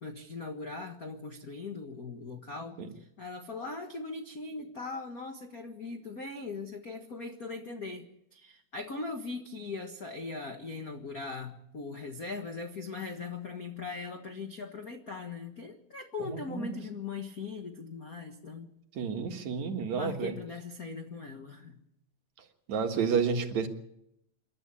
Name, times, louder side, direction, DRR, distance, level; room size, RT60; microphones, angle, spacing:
voice 1, 0.0-8.0 8.3-18.7 19.9-21.8, left 4 dB, 65° left, 4 dB, 0.8 m, -40 dB
voice 2, 16.3-16.8 19.0-20.4 22.7-23.7, right 6 dB, 60° right, 4 dB, 2.7 m, -30 dB
27.5 x 12.5 x 8.5 m, 0.79 s
omnidirectional pair, 4.2 m